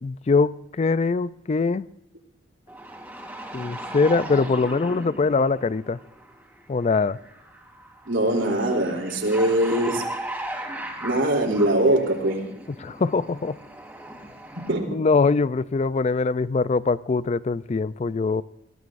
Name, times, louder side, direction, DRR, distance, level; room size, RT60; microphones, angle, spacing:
voice 1, 0.0-1.9 3.5-6.0 6.7-7.2 12.8-13.6 14.9-18.4, left 4 dB, 35° left, 0.4 m, -22 dB
sound 1, 2.7-14.7, right 1 dB, 10° right, 2.8 m, -37 dB
voice 2, 8.1-10.2 11.0-12.6 14.5-15.0, right 1 dB, 80° right, 3.3 m, -22 dB
22.0 x 16.0 x 2.6 m
head